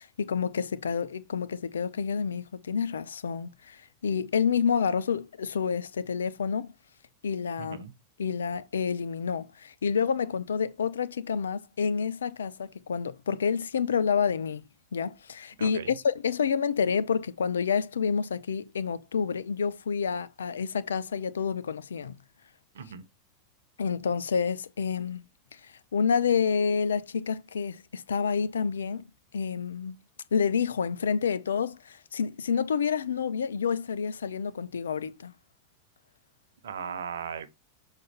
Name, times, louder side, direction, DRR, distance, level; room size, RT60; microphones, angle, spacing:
voice 1, 0.0-6.7 7.2-7.8 8.2-14.6 14.9-22.2 23.8-25.2 25.9-29.1 29.3-30.0 30.3-35.3, left 6 dB, 85° left, 0.6 m, -28 dB
voice 2, 7.6-7.9 15.6-16.0 22.7-23.0 36.6-37.5, right 7 dB, 80° right, 1.0 m, -37 dB
6.5 x 4.1 x 4.2 m
hypercardioid pair, 100°, 0 cm